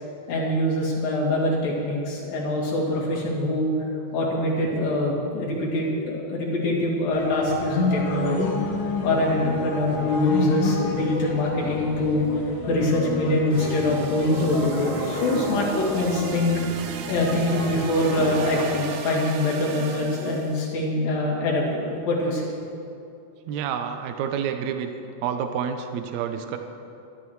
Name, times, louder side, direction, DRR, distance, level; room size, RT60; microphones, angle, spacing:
voice 1, 0.3-3.7 4.1-8.6 9.0-12.3 12.7-16.8 17.1-22.5, left 1 dB, 70° left, -4 dB, 4.2 m, -24 dB
sound 1, 7.1-18.7, left 3 dB, 90° left, 3.2 m, -30 dB
sound 2, 13.5-20.6, right 5 dB, 75° right, 1.9 m, -34 dB
voice 2, 23.5-24.9 25.2-26.6, right 8 dB, 90° right, 7 dB, 1.6 m, -28 dB
22.0 x 12.0 x 3.2 m, 2.5 s
omnidirectional pair, 4.2 m